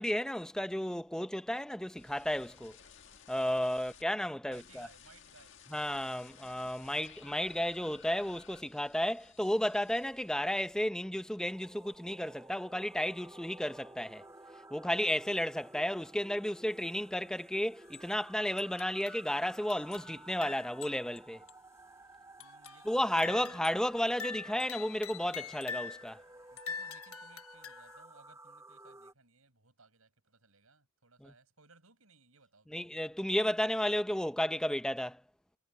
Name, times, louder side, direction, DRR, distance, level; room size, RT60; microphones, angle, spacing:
voice 1, 0.0-2.8 3.3-4.9 5.7-14.2 14.7-21.4 22.9-26.2 31.2-31.3 32.7-35.2, equal, 5° left, 0.6 m, -33 dB
sound 1, 2.0-4.0 4.5-11.1 11.4-11.9, left 7 dB, 60° left, 1.9 m, -57 dB
voice 2, 3.7-4.0 4.4-5.6 22.4-23.6 26.5-33.2, right 3 dB, 75° right, 7.3 m, -62 dB
sound 2, 11.5-29.1, right 2 dB, 15° right, 3.8 m, -55 dB
sound 3, 17.8-18.1 18.6-21.2 21.5-21.6 22.4-22.9 23.2-26.1 26.6-28.0, left 5 dB, 75° left, 1.1 m, -45 dB
head